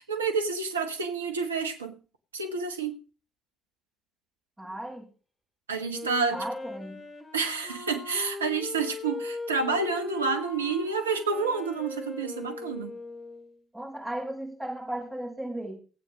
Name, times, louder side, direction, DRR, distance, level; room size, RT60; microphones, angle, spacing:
voice 1, 0.0-2.0 2.3-2.9 5.7-6.4 7.3-13.0, right 4 dB, 85° right, 1.2 m, -29 dB
voice 2, 4.6-5.1 6.3-7.0 13.7-15.8, right 1 dB, 15° right, 6.9 m, -35 dB
Wind instrument woodwind instrument, 5.9-13.6, left 3 dB, 30° left, 2.8 m, -40 dB
15.0 x 8.8 x 6.3 m
figure-of-eight pair, 45°, 0 cm